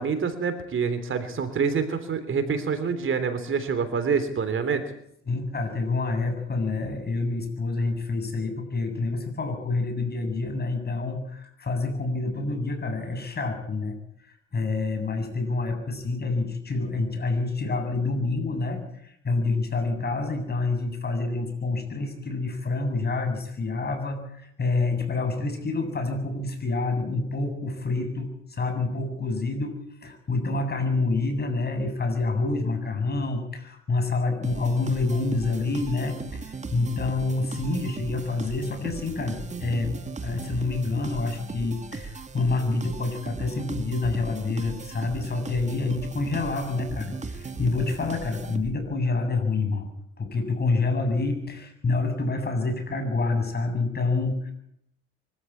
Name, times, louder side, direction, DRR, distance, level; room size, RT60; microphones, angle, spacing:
voice 1, 0.0-4.9, right 5 dB, 45° right, 10 dB, 3.4 m, -26 dB
voice 2, 5.3-49.9 50.2-54.5, left 3 dB, 35° left, 6 dB, 7.8 m, -27 dB
sound 1, 34.4-49.0, right 4 dB, 25° right, 2.1 m, -38 dB
24.5 x 14.0 x 8.6 m, 0.73 s
cardioid pair, 95°, 29 cm